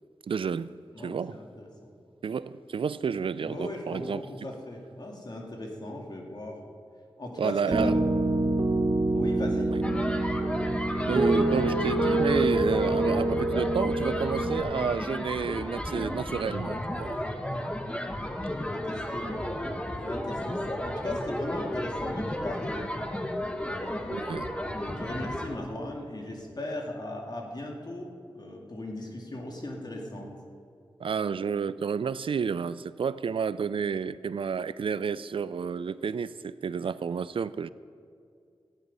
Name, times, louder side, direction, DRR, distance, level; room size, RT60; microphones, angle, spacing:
voice 1, 0.3-0.7 1.0-1.4 2.2-4.2 7.4-8.0 9.7-9.8 11.1-17.2 24.1-24.5 31.0-37.7, right 6 dB, 70° right, 0.4 m, -30 dB
voice 2, 0.9-1.9 3.4-6.6 7.2-7.9 9.1-9.7 17.4-17.6 18.0-19.6 19.9-22.9 23.6-30.3, left 1 dB, 50° left, 2.3 m, -38 dB
Piano, 7.7-14.6, right 1 dB, 35° right, 1.1 m, -26 dB
sound 1, 9.8-25.5, left 1 dB, 10° left, 1.2 m, -33 dB
15.0 x 9.3 x 5.4 m
cardioid pair, 55°, 9 cm